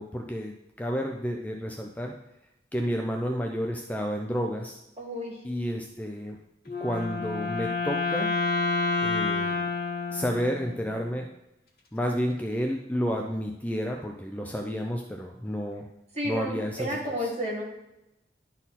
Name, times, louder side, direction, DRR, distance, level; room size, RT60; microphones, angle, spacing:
voice 1, 0.0-2.1 2.7-4.8 5.4-6.4 6.8-8.3 9.0-9.7 10.1-11.3 11.9-15.9 16.2-17.3, equal, 10° left, 2 dB, 0.4 m, -31 dB
voice 2, 5.0-5.3 16.1-17.6, equal, 35° right, -3 dB, 1.8 m, -31 dB
Wind instrument woodwind instrument, 6.7-10.9, left 3 dB, 55° left, 1.6 m, -29 dB
11.0 x 4.1 x 4.1 m, 0.89 s
head